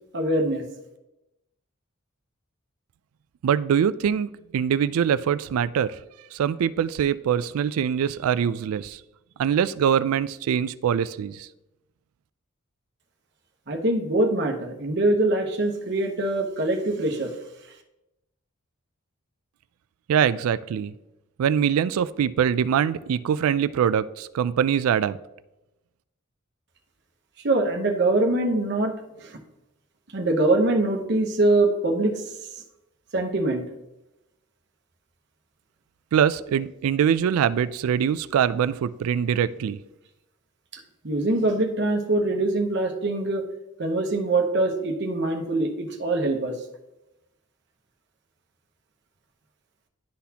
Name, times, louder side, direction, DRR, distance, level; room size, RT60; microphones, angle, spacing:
voice 1, 0.1-0.6 13.7-17.3 27.4-29.4 30.1-32.2 33.1-33.6 40.7-43.4 43.8-46.6, right 2 dB, 50° right, 3 dB, 0.9 m, -23 dB
voice 2, 3.4-5.9 6.3-9.0 9.4-11.5 20.1-20.9 21.4-25.2 36.1-39.8, right 8 dB, 80° right, 16 dB, 0.3 m, -23 dB
11.5 x 4.0 x 2.8 m, 0.94 s
head